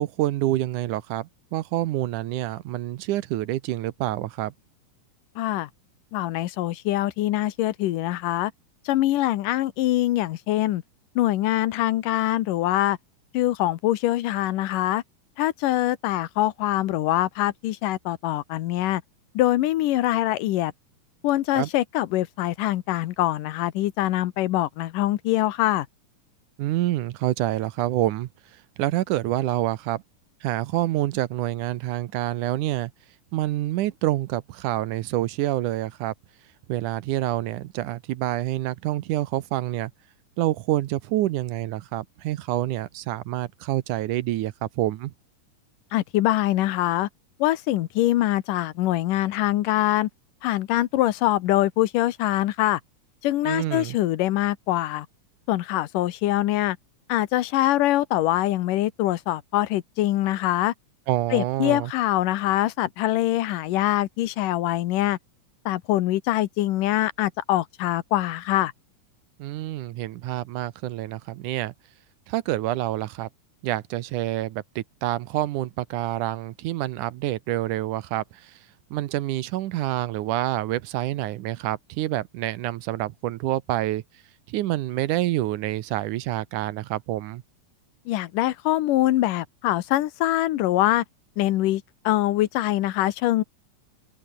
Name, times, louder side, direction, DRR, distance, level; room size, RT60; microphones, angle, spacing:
voice 1, 0.0-4.5 21.5-21.7 26.6-28.3 28.8-30.0 30.4-32.9 33.3-36.1 36.7-39.9 40.4-45.1 53.4-54.0 61.1-61.9 69.4-71.7 72.3-73.3 73.6-78.6 78.9-84.0 84.5-87.4, right 15 dB, 75° right, 2.3 m, -27 dB
voice 2, 5.4-5.7 6.1-8.5 8.9-10.8 11.2-13.0 13.3-15.0 15.4-19.0 19.3-20.7 21.2-25.9 45.9-47.1 47.4-50.1 50.4-52.8 53.2-55.1 55.5-56.8 57.1-60.7 61.3-65.2 65.7-68.7 88.1-91.0 91.4-93.4, left 15 dB, 85° left, 2.6 m, -24 dB
omnidirectional pair, 3.8 m